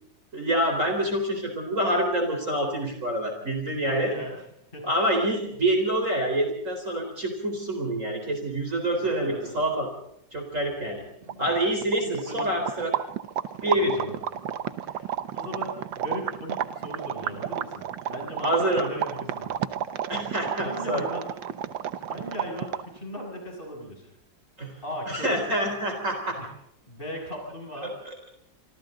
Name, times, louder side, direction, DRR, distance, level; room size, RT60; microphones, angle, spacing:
voice 1, 0.3-4.1 4.8-9.9 10.3-11.0 11.4-12.9 13.6-14.0 18.4-18.9 20.1-21.0 24.6-26.4 27.8-27.9, right 1 dB, 40° right, 4 dB, 4.5 m, -26 dB
voice 2, 3.9-4.4 4.7-4.9 9.0-9.5 11.2-11.5 12.0-12.5 13.6-14.1 14.5-19.6 20.6-21.2 22.0-24.1 24.8-25.4 26.4-26.5 26.9-27.9, equal, 25° left, 0 dB, 7.0 m, -38 dB
sound 1, 11.0-11.1 11.2-23.0, right 10 dB, 80° right, 1.7 m, -32 dB
28.0 x 25.0 x 3.9 m, 0.73 s
omnidirectional pair, 2.0 m